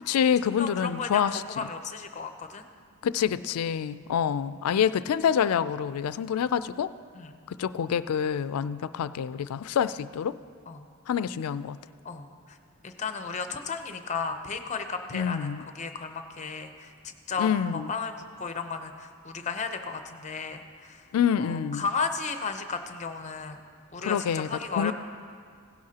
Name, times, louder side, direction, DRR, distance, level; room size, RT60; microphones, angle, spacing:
voice 1, 0.0-1.4 3.0-6.9 7.5-10.4 11.1-11.8 15.1-15.6 17.4-17.9 21.1-21.8 24.0-24.9, left 8 dB, 80° left, 15 dB, 0.3 m, -27 dB
voice 2, 0.6-1.2 1.5-2.6 7.1-7.3 10.7-10.8 12.0-12.6 12.8-21.1 21.4-23.6 23.9-24.9, left 5 dB, 30° left, 7 dB, 0.6 m, -34 dB
16.5 x 11.5 x 2.8 m, 2.1 s
head